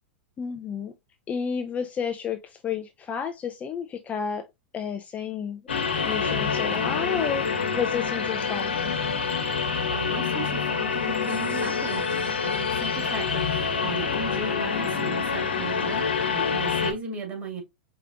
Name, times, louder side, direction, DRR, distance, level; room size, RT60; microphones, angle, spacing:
voice 1, 0.4-0.9 1.3-4.4 4.7-5.6 6.0-7.5 7.7-8.9, left 7 dB, 25° left, 0.6 m, -31 dB
sound 1, 5.7-16.9, left 5 dB, 85° left, 1.2 m, -27 dB
voice 2, 9.9-17.6, right 4 dB, 30° right, 2.0 m, -36 dB
4.9 x 3.3 x 2.4 m
hypercardioid pair, 100°, 6 cm